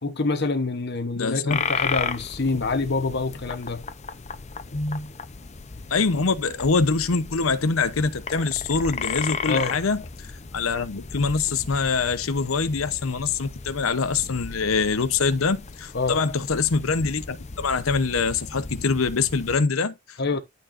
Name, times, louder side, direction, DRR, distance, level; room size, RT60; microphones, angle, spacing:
voice 1, 0.0-3.8 4.7-5.1 9.5-9.8 15.9-16.2 20.2-20.4, left 3 dB, 55° left, 1.0 m, -26 dB
voice 2, 1.1-1.7 5.9-10.3 10.5-20.2, left 4 dB, 85° left, 0.8 m, -24 dB
sound 1, 1.5-19.6, left 5 dB, 35° left, 0.7 m, -35 dB
12.0 x 4.6 x 2.6 m
head